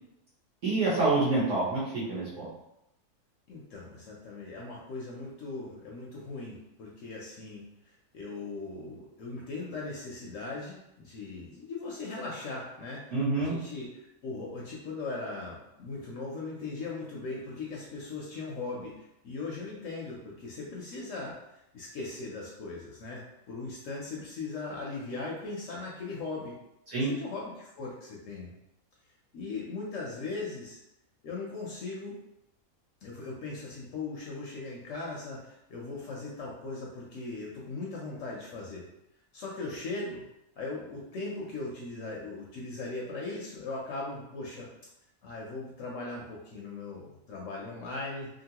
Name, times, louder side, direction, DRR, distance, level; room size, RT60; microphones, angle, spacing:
voice 1, 0.6-2.5 13.1-13.5 26.9-27.1, right 3 dB, 60° right, -7 dB, 1.2 m, -27 dB
voice 2, 3.5-7.6 8.1-13.0 13.4-13.9 14.2-18.9 19.2-21.4 21.7-26.6 27.0-28.5 29.3-30.8 31.2-32.2 33.0-38.9 39.3-40.2 40.6-44.7 45.2-48.3, left 3 dB, 65° left, -3 dB, 0.9 m, -39 dB
2.9 x 2.5 x 2.8 m, 0.84 s
omnidirectional pair, 1.6 m